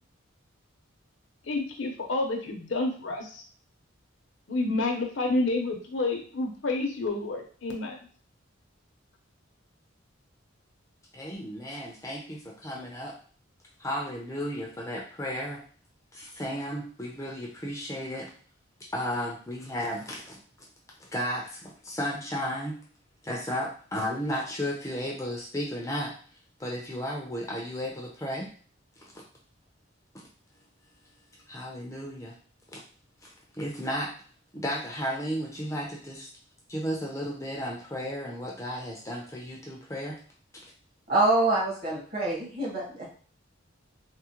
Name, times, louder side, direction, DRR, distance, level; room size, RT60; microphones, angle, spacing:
voice 1, 1.5-3.4 4.5-8.0, left 2 dB, 65° left, 2 dB, 0.7 m, -29 dB
voice 2, 11.1-13.2 13.8-15.6 16.1-18.3 18.9-20.4 21.0-22.8 23.2-26.1 26.6-28.5 29.1-29.2 31.5-32.3 32.7-32.8 33.2-34.1 34.5-36.3 36.7-40.2 40.6-40.7, equal, 15° left, -2 dB, 0.5 m, -34 dB
voice 3, 41.1-43.0, right 2 dB, 45° right, -5 dB, 1.5 m, -25 dB
3.6 x 2.0 x 2.8 m, 0.44 s
head